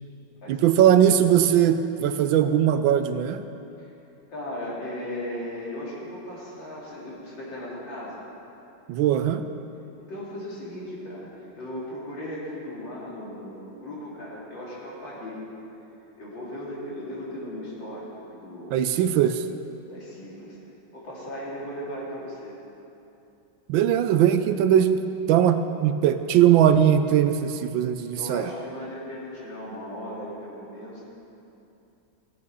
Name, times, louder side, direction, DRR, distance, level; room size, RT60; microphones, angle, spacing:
voice 1, 0.5-3.4 8.9-9.5 18.7-19.4 23.7-28.5, right 10 dB, 75° right, 10 dB, 1.3 m, -20 dB
voice 2, 4.3-8.2 10.1-15.4 16.2-18.9 19.9-20.6 20.9-22.6 28.1-31.1, left 1 dB, 65° left, -6 dB, 3.5 m, -37 dB
15.5 x 8.5 x 5.6 m, 2.8 s
omnidirectional pair, 2.2 m